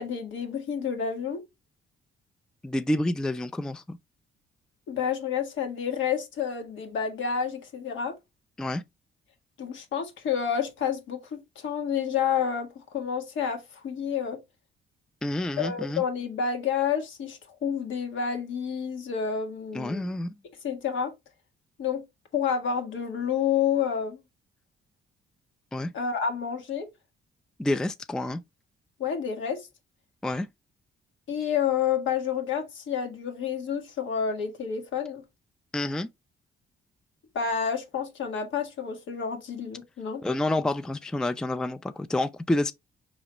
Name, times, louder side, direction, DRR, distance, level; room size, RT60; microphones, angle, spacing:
voice 1, 0.0-1.4 4.9-8.2 9.6-14.4 15.6-20.1 20.6-21.1 21.8-22.0 22.3-24.2 25.9-26.9 29.0-29.7 31.3-35.2 37.3-40.2, left 7 dB, 75° left, 1.4 m, -29 dB
voice 2, 2.6-4.0 8.6-8.8 15.2-16.0 19.7-20.3 25.7-25.9 27.6-28.4 30.2-30.5 35.7-36.1 40.2-42.7, left 1 dB, 5° left, 0.3 m, -28 dB
4.9 x 3.1 x 2.9 m
cardioid pair, 90°, 20 cm